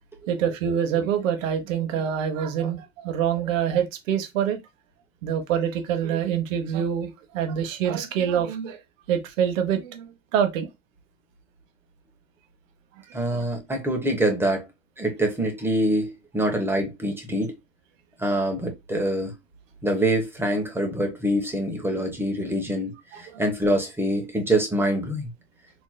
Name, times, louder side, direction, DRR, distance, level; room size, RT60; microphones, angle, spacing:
voice 1, 0.3-4.6 5.2-8.8 9.1-10.7 13.1-13.4 23.1-23.4, right 8 dB, 80° right, 1.2 m, -26 dB
voice 2, 13.1-14.6 15.0-17.5 18.2-19.3 19.8-25.3, right 1 dB, 5° right, 1.0 m, -25 dB
4.4 x 3.0 x 2.2 m
supercardioid pair, 135°, 39 cm